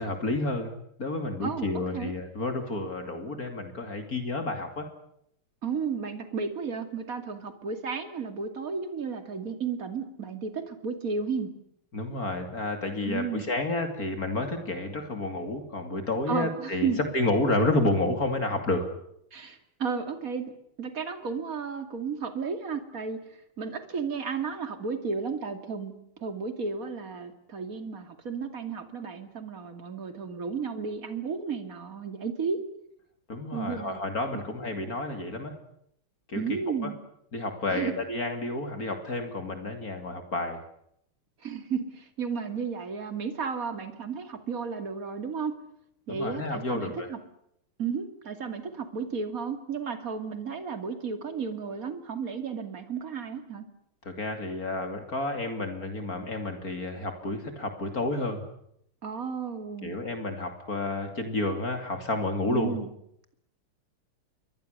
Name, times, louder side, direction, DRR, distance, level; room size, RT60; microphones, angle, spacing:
voice 1, 0.0-4.9 11.9-18.9 33.3-35.6 36.3-36.9 37.3-40.6 46.1-47.1 54.0-58.5 59.8-62.8, left 2 dB, 40° left, 6 dB, 3.1 m, -30 dB
voice 2, 5.6-11.5 13.0-13.4 16.3-17.0 19.3-20.5 20.8-23.2 23.6-25.9 26.2-32.6 33.5-34.0 36.3-36.9 37.7-37.9 41.4-45.5 46.1-47.2 47.8-53.6 59.0-59.9 62.5-62.9, right 5 dB, 40° right, 8 dB, 2.8 m, -33 dB
28.5 x 23.0 x 6.7 m, 0.73 s
omnidirectional pair, 2.4 m